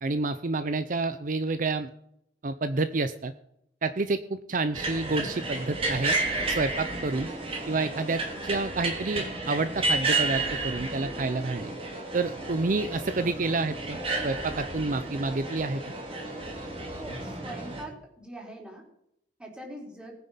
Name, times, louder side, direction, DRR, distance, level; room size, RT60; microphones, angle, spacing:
voice 1, 0.0-1.9 2.4-3.3 3.8-6.1 6.5-7.3 7.7-11.7 12.1-14.0 14.2-15.8, right 3 dB, 50° right, 11 dB, 0.6 m, -29 dB
sound 1, 4.7-17.8, right 2 dB, 35° right, 3.1 m, -32 dB
voice 2, 17.0-18.8 19.4-20.1, right 1 dB, 5° right, -1 dB, 3.9 m, -42 dB
18.5 x 9.6 x 5.7 m, 0.76 s
head